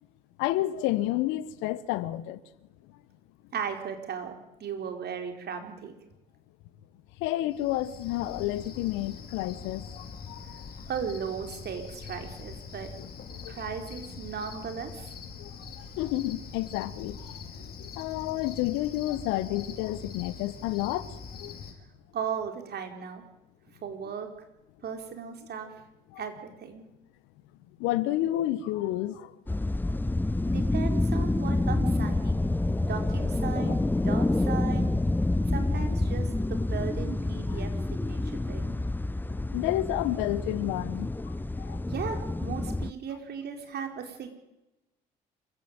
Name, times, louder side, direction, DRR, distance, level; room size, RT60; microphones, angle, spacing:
voice 1, 0.4-2.4 7.2-10.6 13.0-13.1 13.4-13.6 15.4-21.6 26.1-26.2 27.8-29.3 33.5-33.7 37.5-37.6 39.5-41.9, left 15 dB, 70° left, 1.3 m, -31 dB
voice 2, 3.5-5.9 10.9-12.9 13.5-15.1 22.1-23.2 23.8-24.3 24.8-25.7 26.2-26.8 30.5-32.4 32.8-34.9 35.5-38.7 41.9-44.3, right 7 dB, 55° right, 4.7 m, -36 dB
Cricket, 7.5-21.7, left 6 dB, 50° left, 5.0 m, -43 dB
sound 1, 29.5-42.9, left 2 dB, 10° left, 0.8 m, -28 dB
26.5 x 15.5 x 9.0 m
hypercardioid pair, 50°, 20 cm